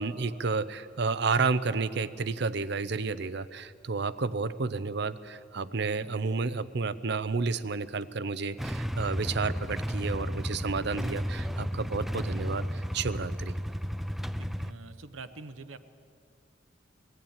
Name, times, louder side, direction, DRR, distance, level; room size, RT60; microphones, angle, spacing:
voice 1, 0.0-13.6, right 4 dB, 60° right, 15 dB, 0.7 m, -31 dB
Motorcycle / Engine starting / Idling, 8.6-14.7, equal, ahead, 0.4 m, -33 dB
voice 2, 14.4-15.8, right 3 dB, 90° right, 11 dB, 1.0 m, -45 dB
20.5 x 15.0 x 8.9 m, 2.4 s
head